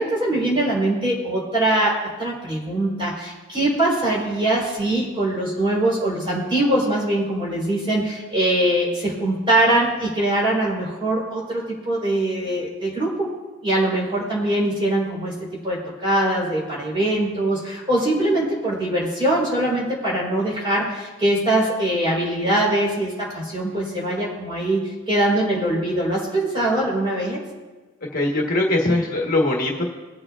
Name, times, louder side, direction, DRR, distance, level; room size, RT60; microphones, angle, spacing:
voice 1, 0.0-13.3 13.6-15.3 15.6-27.4, right 1 dB, 25° right, -5 dB, 4.1 m, -22 dB
voice 2, 28.1-29.8, left 2 dB, 40° left, -1 dB, 1.4 m, -21 dB
21.5 x 7.9 x 2.5 m, 1.3 s
head